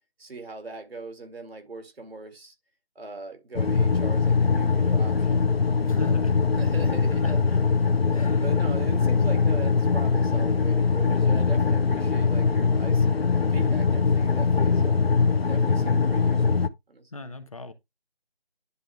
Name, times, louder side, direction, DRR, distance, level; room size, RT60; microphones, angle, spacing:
voice 1, 0.2-2.5 3.0-5.5 6.0-6.2 6.5-7.7 8.0-13.2 13.5-15.1 15.5-17.1, right 3 dB, 70° right, 2.2 m, -40 dB
sound 1, 3.5-16.7, left 5 dB, 70° left, 0.9 m, -22 dB
voice 2, 5.9-6.3 7.2-7.4 8.1-8.4 17.1-17.7, left 3 dB, 35° left, 1.2 m, -37 dB
11.0 x 3.9 x 3.3 m
figure-of-eight pair, 175°, 31 cm